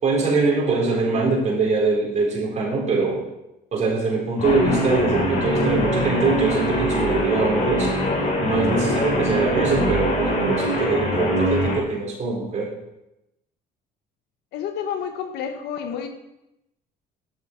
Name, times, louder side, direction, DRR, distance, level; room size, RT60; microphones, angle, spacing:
voice 1, 0.0-3.2 3.7-7.9 8.4-12.7, right 3 dB, 45° right, -3 dB, 4.1 m, -23 dB
Guitar, 4.4-11.8, equal, 50° left, 4.5 m, -23 dB
voice 2, 14.5-16.1, left 8 dB, 85° left, 7 dB, 1.3 m, -29 dB
11.5 x 7.3 x 4.5 m, 0.88 s
cardioid pair, 110°, 17 cm